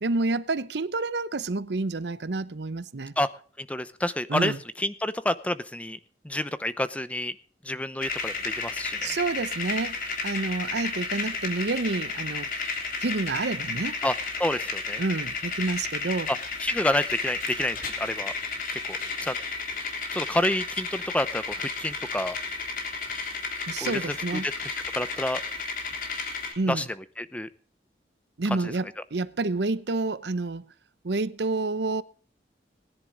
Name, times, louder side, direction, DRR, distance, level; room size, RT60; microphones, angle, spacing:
voice 1, 0.0-3.1 4.3-4.6 9.0-10.0 10.2-12.5 13.0-14.0 15.0-16.3 23.7-24.5 26.6-26.8 28.4-30.7 31.0-32.0, right 3 dB, 80° right, 0.8 m, -29 dB
voice 2, 3.6-6.0 6.2-7.3 7.6-9.1 14.0-15.0 16.6-18.3 18.7-19.4 20.1-22.4 23.8-25.4 26.7-26.9 27.2-27.5 28.6-28.7, left 1 dB, 10° left, 0.7 m, -29 dB
sound 1, 8.0-26.5, left 4 dB, 50° left, 3.3 m, -32 dB
19.5 x 10.5 x 3.8 m
head